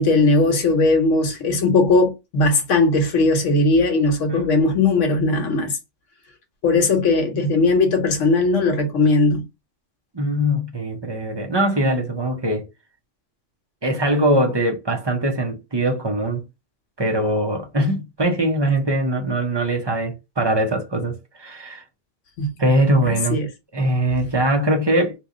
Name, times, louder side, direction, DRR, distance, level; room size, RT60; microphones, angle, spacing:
voice 1, 0.0-5.7 6.6-9.4 22.4-22.5 23.1-23.5, left 3 dB, 80° left, 1.2 m, -18 dB
voice 2, 10.1-12.7 13.8-16.4 17.0-21.8 22.6-23.4 23.7-25.1, right 1 dB, 30° right, 0.5 m, -21 dB
2.9 x 2.4 x 3.7 m
omnidirectional pair, 1.3 m